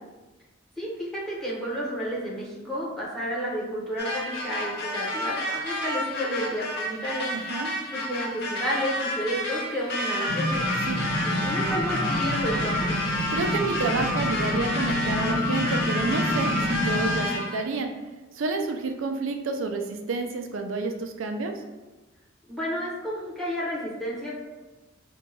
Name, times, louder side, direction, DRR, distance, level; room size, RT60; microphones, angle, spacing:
voice 1, 0.8-7.3 7.9-10.6 11.2-12.9 22.5-24.3, equal, ahead, -7 dB, 0.8 m, -31 dB
sound 1, 4.0-17.7, left 1 dB, 55° left, 0.6 m, -30 dB
voice 2, 7.3-7.7 10.9-11.0 13.3-17.9 18.3-21.5, right 3 dB, 75° right, 5 dB, 0.4 m, -29 dB
sound 2, 10.3-17.2, left 1 dB, 90° left, 0.7 m, -29 dB
2.8 x 2.2 x 4.0 m, 1.1 s
head